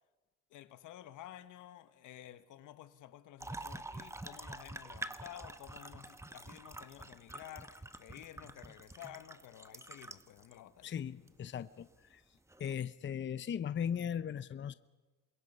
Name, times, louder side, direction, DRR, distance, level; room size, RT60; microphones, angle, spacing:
voice 1, 0.5-10.9, left 12 dB, 85° left, 1.3 m, -52 dB
sound 1, 3.4-10.5 11.3-11.4 12.5-12.8, right 2 dB, 10° right, 0.9 m, -47 dB
voice 2, 10.8-12.2 12.6-14.7, left 8 dB, 40° left, 0.7 m, -38 dB
27.5 x 22.5 x 5.5 m
cardioid pair, 90°, 30 cm